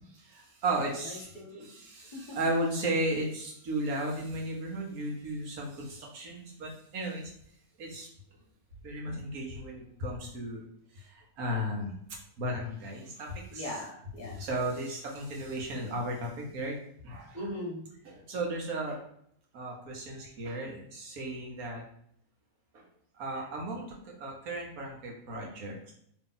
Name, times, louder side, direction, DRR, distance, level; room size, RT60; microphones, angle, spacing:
voice 1, 0.2-1.3 1.6-7.3 7.8-8.1 8.8-10.6 11.0-12.0 12.4-13.7 14.4-16.7 17.0-17.5 18.1-19.0 19.5-21.8 22.7-22.8 23.2-25.9, right 1 dB, 85° right, -1 dB, 1.4 m, -35 dB
voice 2, 1.0-1.7 2.1-2.4 13.5-14.5 17.3-17.8, left 1 dB, 40° left, -2 dB, 0.8 m, -40 dB
3.0 x 2.8 x 3.7 m, 0.69 s
omnidirectional pair, 1.5 m